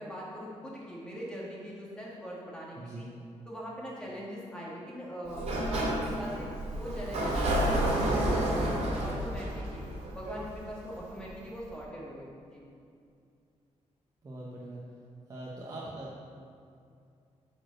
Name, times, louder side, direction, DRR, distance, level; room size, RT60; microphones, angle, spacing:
voice 1, 0.0-3.1 3.5-6.5 6.8-9.8 10.1-12.6, equal, 5° left, -5 dB, 1.9 m, -41 dB
Sliding door, 5.3-10.9, right 1 dB, 65° right, 2.4 m, -30 dB
voice 2, 14.2-14.8 15.3-16.1, right 2 dB, 30° right, -5 dB, 1.0 m, -41 dB
8.8 x 5.0 x 6.4 m, 2.4 s
wide cardioid pair, 155°, 12 cm